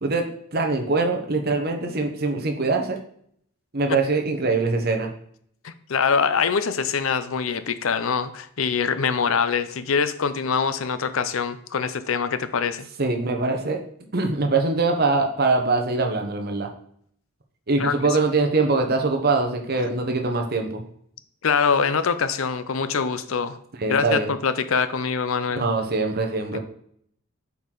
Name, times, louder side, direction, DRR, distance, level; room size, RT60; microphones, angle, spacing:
voice 1, 0.0-3.0 3.7-5.1 13.0-13.8 14.1-16.7 17.7-20.8 23.8-24.3 25.6-26.6, right 3 dB, 45° right, 4 dB, 1.0 m, -23 dB
voice 2, 5.6-12.9 17.8-17.9 21.4-23.6 23.9-25.7 26.5-26.6, left 6 dB, 75° left, 12 dB, 0.6 m, -24 dB
8.2 x 4.7 x 3.9 m, 0.66 s
head